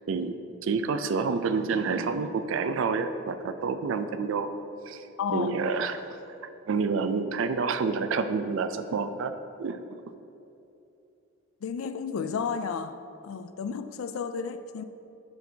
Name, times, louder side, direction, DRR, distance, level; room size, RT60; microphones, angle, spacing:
voice 1, 0.6-4.5 4.9-5.0 5.3-6.0 6.7-9.3 9.6-9.8, right 4 dB, 65° right, 0.4 m, -28 dB
voice 2, 5.2-5.5 11.6-13.0 13.2-14.8, left 6 dB, 75° left, 0.3 m, -32 dB
10.0 x 4.4 x 2.7 m
head